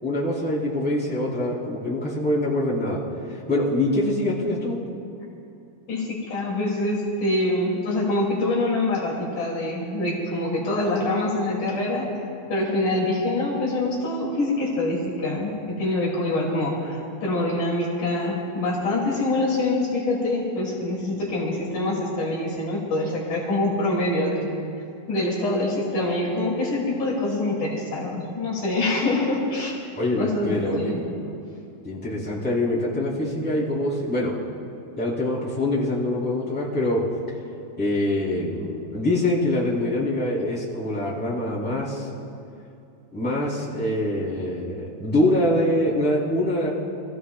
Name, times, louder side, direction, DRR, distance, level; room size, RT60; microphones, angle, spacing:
voice 1, 0.0-3.0 3.3-4.8 30.0-30.9 31.8-34.4 35.0-37.0 37.8-42.1 43.1-46.7, left 1 dB, 5° left, -9 dB, 3.4 m, -24 dB
voice 2, 5.9-12.1 12.5-24.5 25.1-29.7 30.1-31.0, left 2 dB, 70° left, -5 dB, 4.0 m, -25 dB
26.5 x 16.0 x 2.3 m, 2.6 s
omnidirectional pair, 3.7 m